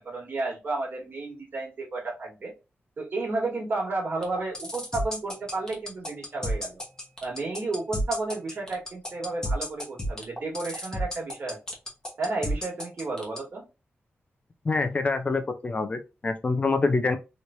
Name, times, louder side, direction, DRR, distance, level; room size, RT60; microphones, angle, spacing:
voice 1, 0.0-2.5 3.0-6.8 7.2-11.6 12.2-13.7, right 3 dB, 50° right, 1.6 m, -32 dB
sound 1, 4.2-13.4, equal, 15° left, 1.0 m, -32 dB
voice 2, 14.6-17.2, left 3 dB, 30° left, 0.6 m, -26 dB
3.2 x 3.0 x 2.6 m
wide cardioid pair, 160°, 4 cm